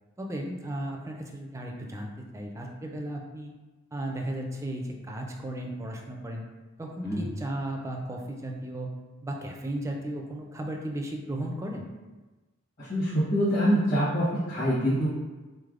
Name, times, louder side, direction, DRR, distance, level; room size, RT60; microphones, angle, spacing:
voice 1, 0.2-3.5 3.9-6.4 6.8-8.9 9.2-11.9, right 1 dB, 15° right, 1 dB, 0.3 m, -35 dB
voice 2, 12.8-15.1, equal, 40° left, -11 dB, 1.0 m, -25 dB
3.9 x 3.3 x 2.4 m, 1.2 s
head